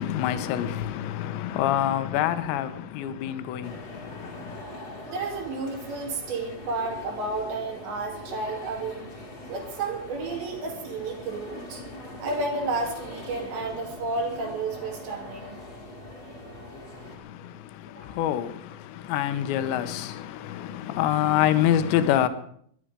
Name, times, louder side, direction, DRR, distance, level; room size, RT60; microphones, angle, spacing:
voice 1, 0.0-4.6 17.1-22.3, left 11 dB, 80° left, 2.9 m, -27 dB
sound 1, 3.6-17.2, left 1 dB, 35° left, 1.5 m, -42 dB
voice 2, 5.1-9.1 9.5-11.8 12.2-15.6 17.9-18.1, right 3 dB, 65° right, 4.7 m, -31 dB
21.5 x 11.0 x 5.1 m
omnidirectional pair, 5.7 m